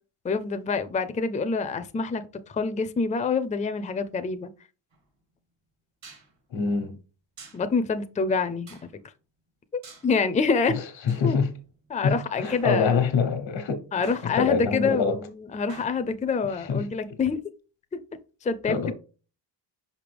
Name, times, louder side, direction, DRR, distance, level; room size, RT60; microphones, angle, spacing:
voice 1, 0.2-4.5 7.5-8.8 10.0-10.8 11.2-11.4 11.9-13.0 13.9-17.4 17.9-18.0 18.4-18.9, left 4 dB, 20° left, 0.4 m, -26 dB
sound 1, 4.9-5.0 6.0-6.3 7.4-7.7 8.7-9.0 9.8-10.1 11.1-12.0 12.4-13.1 14.0-14.7 15.7-16.3, right 4 dB, 75° right, 2.0 m, -48 dB
voice 2, 6.5-7.0 10.7-11.5 12.0-13.8 14.2-15.2 16.7-16.8 18.7-18.9, left 5 dB, 85° left, 1.2 m, -25 dB
5.4 x 5.2 x 3.3 m
wide cardioid pair, 105°, 44 cm